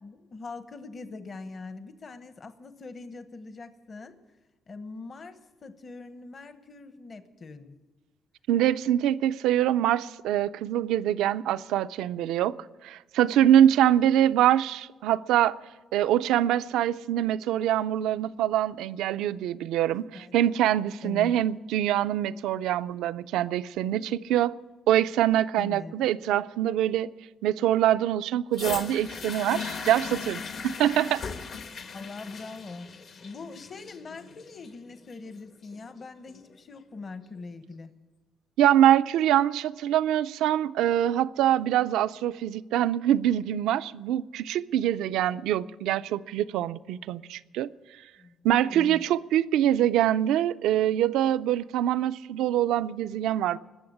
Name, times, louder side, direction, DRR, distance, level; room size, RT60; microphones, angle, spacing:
voice 1, 0.0-4.2 4.7-7.8 20.1-20.4 21.0-21.3 25.6-25.9 31.9-32.9 33.2-37.9 48.2-48.4 48.7-49.0, left 3 dB, 45° left, 1.1 m, -42 dB
voice 2, 8.5-12.6 12.8-15.6 15.9-24.6 24.9-27.1 27.4-31.2 38.6-47.7 48.4-53.6, right 11 dB, 90° right, 0.4 m, -24 dB
sound 1, 28.5-36.5 37.3-37.4, left 5 dB, 65° left, 1.4 m, -38 dB
20.5 x 7.0 x 9.7 m
cardioid pair, 90°, 0 cm